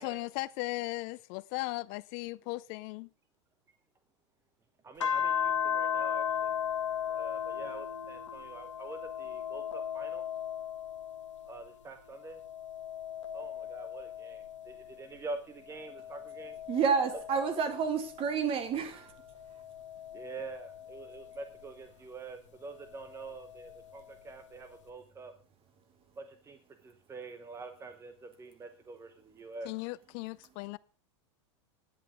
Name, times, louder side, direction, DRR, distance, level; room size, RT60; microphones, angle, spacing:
voice 1, 0.0-3.1 29.6-30.8, left 21 dB, 55° left, 0.4 m, -37 dB
voice 2, 4.8-6.6 7.1-10.3 11.4-12.4 13.3-16.6 17.1-17.2 18.9-19.2 20.1-25.3 26.2-29.7, right 3 dB, 20° right, 0.9 m, -46 dB
sound 1, 5.0-11.7 12.2-15.1 15.7-18.4 19.2-21.6 23.0-24.1, left 9 dB, 90° left, 1.1 m, -37 dB
voice 3, 16.7-19.1, right 6 dB, 35° right, 2.0 m, -29 dB
10.5 x 8.5 x 4.9 m
hypercardioid pair, 105°, 15 cm